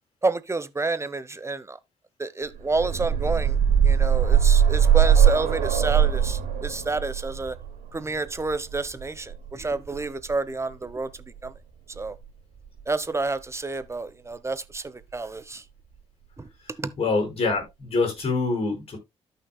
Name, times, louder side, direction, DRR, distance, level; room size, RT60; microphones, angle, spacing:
voice 1, 0.2-1.8 2.2-3.6 3.8-7.6 7.9-11.1 11.4-11.5 12.0-12.2 12.9-15.6 16.4-16.5 16.8-16.9, right 3 dB, 20° right, 1.1 m, -29 dB
sound 1, 2.5-10.3 11.5-11.6 12.0-12.1, right 8 dB, 70° right, 3.4 m, -21 dB
voice 2, 17.0-19.0, left 3 dB, 45° left, 5.0 m, -25 dB
13.5 x 5.9 x 2.3 m
hypercardioid pair, 45°, 14 cm